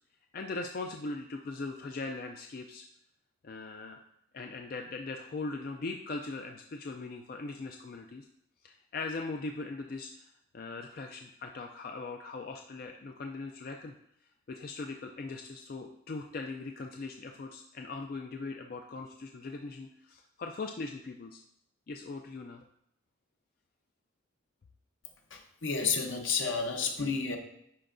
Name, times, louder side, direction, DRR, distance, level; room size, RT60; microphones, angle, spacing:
voice 1, 0.3-2.8 3.4-4.0 4.3-8.3 8.6-10.3 10.5-14.0 14.5-21.4 21.9-22.6, left 3 dB, 45° left, 3 dB, 0.3 m, -40 dB
voice 2, 25.3-27.4, left 5 dB, 70° left, 3 dB, 0.9 m, -31 dB
10.0 x 4.4 x 2.6 m, 0.74 s
head